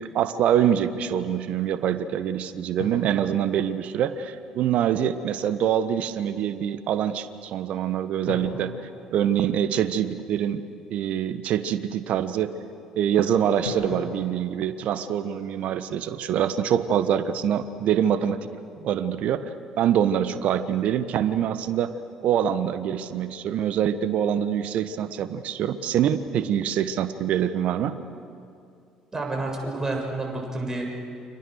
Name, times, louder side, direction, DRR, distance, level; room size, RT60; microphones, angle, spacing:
voice 1, 0.0-8.8 9.1-10.6 10.9-12.5 13.0-18.5 18.8-19.5 19.8-21.9 22.2-28.0, right 9 dB, 60° right, 12 dB, 1.3 m, -25 dB
sound 1, 2.8-4.4 8.3-10.2 13.6-15.9, left 4 dB, 80° left, 2.6 m, -41 dB
voice 2, 29.1-30.8, right 2 dB, 20° right, 0 dB, 7.4 m, -29 dB
29.5 x 26.5 x 6.6 m, 2.4 s
figure-of-eight pair, 50°, 3 cm